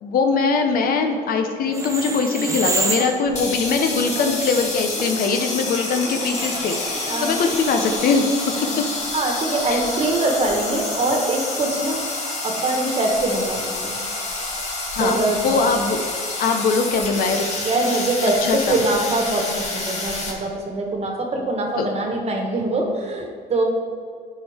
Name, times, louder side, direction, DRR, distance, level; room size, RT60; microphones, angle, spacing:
voice 1, 0.0-8.3 9.7-9.8 15.0-16.0 16.4-17.5 17.9-18.0 18.5-18.8 21.8-21.9, left 4 dB, 60° left, 5 dB, 0.9 m, -21 dB
sound 1, 1.7-8.1, right 2 dB, 20° right, 0.7 m, -31 dB
sound 2, 3.3-20.3, left 2 dB, 40° left, 1.8 m, -28 dB
voice 2, 7.1-7.4 8.6-8.7 9.1-13.9 15.0-15.7 17.6-23.6, right 2 dB, 40° right, 2 dB, 1.4 m, -23 dB
11.0 x 4.6 x 3.5 m, 2.2 s
cardioid pair, 110°, 17 cm